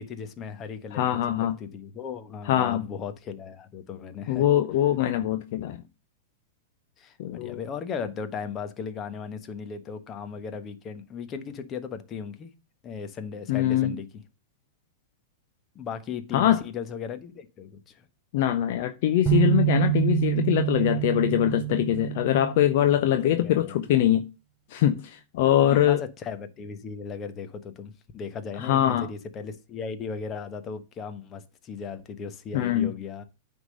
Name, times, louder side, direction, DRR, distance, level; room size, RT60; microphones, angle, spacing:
voice 1, 0.0-4.4 7.0-12.5 12.8-14.1 15.7-18.1 23.2-23.8 25.6-33.2, left 6 dB, 30° left, 1.2 m, -37 dB
voice 2, 0.9-1.6 2.5-2.9 4.3-5.8 7.2-7.6 13.5-13.9 16.3-16.6 18.3-24.2 24.7-26.0 28.6-29.1 32.5-32.9, left 12 dB, 55° left, 0.6 m, -23 dB
sound 1, 19.3-23.3, right 19 dB, 15° right, 3.6 m, -26 dB
9.4 x 3.7 x 6.4 m
figure-of-eight pair, 100°, 0 cm